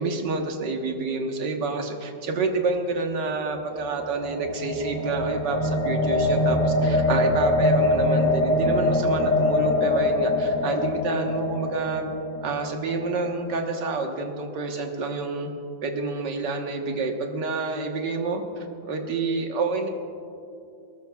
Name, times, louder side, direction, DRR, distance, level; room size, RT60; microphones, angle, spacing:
voice 1, 0.0-12.1 12.4-15.5 15.8-19.9, right 3 dB, 70° right, 3 dB, 1.9 m, -28 dB
sound 1, 3.3-13.5, left 2 dB, 10° left, 2.2 m, -24 dB
23.5 x 19.0 x 2.3 m, 2.6 s
omnidirectional pair, 2.0 m